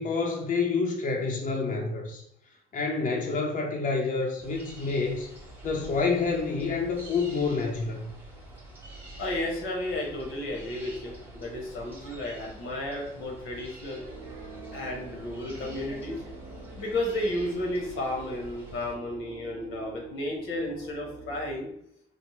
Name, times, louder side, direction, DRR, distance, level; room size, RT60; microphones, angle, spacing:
voice 1, 0.0-2.2 2.7-5.3 5.6-8.1, left 4 dB, 40° left, 0 dB, 0.6 m, -28 dB
sound 1, 4.4-18.9, right 1 dB, 10° right, 0.9 m, -47 dB
voice 2, 9.2-14.0 14.7-16.2 16.8-21.7, left 1 dB, 90° left, 0 dB, 1.0 m, -33 dB
sound 2, 14.1-21.6, right 3 dB, 85° right, 0.8 m, -46 dB
3.2 x 2.1 x 3.0 m, 0.72 s
cardioid pair, 90°, 20 cm